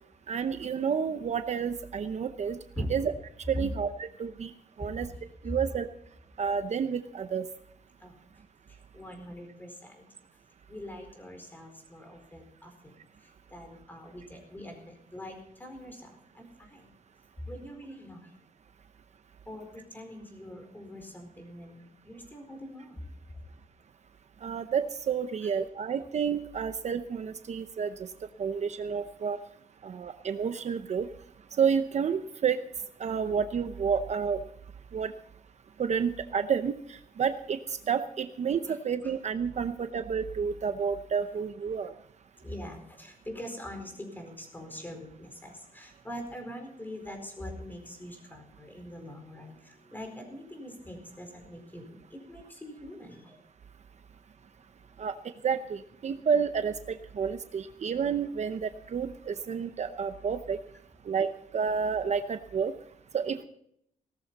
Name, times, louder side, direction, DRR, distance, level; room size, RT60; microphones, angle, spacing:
voice 1, 0.3-2.6 2.9-3.1 3.5-3.9 4.2-4.5 4.8-5.1 5.4-5.9 6.4-7.5 24.4-28.1 28.4-29.4 29.8-31.1 31.6-32.6 33.0-34.4 34.9-35.1 35.8-37.6 37.9-41.9 55.0-55.1 55.4-60.6 61.1-62.7 63.1-63.4, right 6 dB, 55° right, 10 dB, 0.7 m, -30 dB
voice 2, 8.7-10.1 10.7-16.9 17.4-18.3 19.5-23.0 25.4-25.5 38.7-39.1 42.4-53.4 55.0-55.1, equal, 15° left, 4 dB, 4.4 m, -43 dB
18.0 x 13.5 x 4.1 m, 0.71 s
wide cardioid pair, 135°, 14 cm